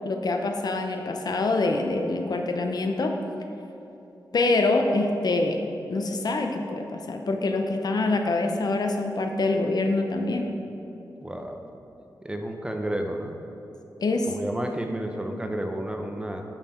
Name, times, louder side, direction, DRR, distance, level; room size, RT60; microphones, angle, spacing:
voice 1, 0.0-3.1 4.3-5.6 5.9-10.5 14.0-14.3, left 2 dB, 60° left, 4 dB, 0.7 m, -25 dB
voice 2, 11.2-11.6 12.2-13.4 14.3-16.4, right 1 dB, 10° right, 3 dB, 0.7 m, -31 dB
9.3 x 5.7 x 4.4 m, 3.0 s
wide cardioid pair, 100°, 8 cm